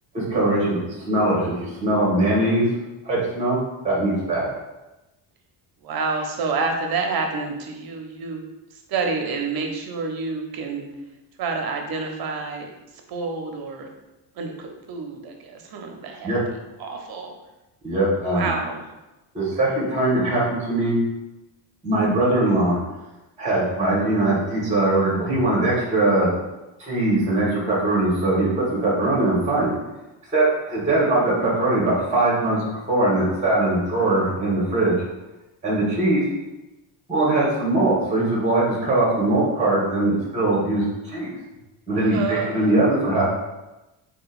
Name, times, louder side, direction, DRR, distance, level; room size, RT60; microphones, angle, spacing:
voice 1, 0.1-0.8 1.1-2.7 3.0-3.6 3.8-4.5 16.2-16.4 17.8-18.5 19.3-21.0 21.8-22.8 23.4-26.3 26.8-28.5 28.8-29.7 30.3-32.6 32.9-34.9 35.6-36.2 37.1-41.3 41.9-43.3, right 2 dB, 15° right, -6 dB, 1.3 m, -21 dB
voice 2, 5.8-8.4 8.7-10.9 11.4-12.7 13.1-13.9 14.4-16.3 16.8-17.3 18.3-18.9 42.1-42.8, right 4 dB, 50° right, 3 dB, 0.7 m, -28 dB
3.7 x 2.2 x 2.4 m, 1.0 s
supercardioid pair, 85°, 48 cm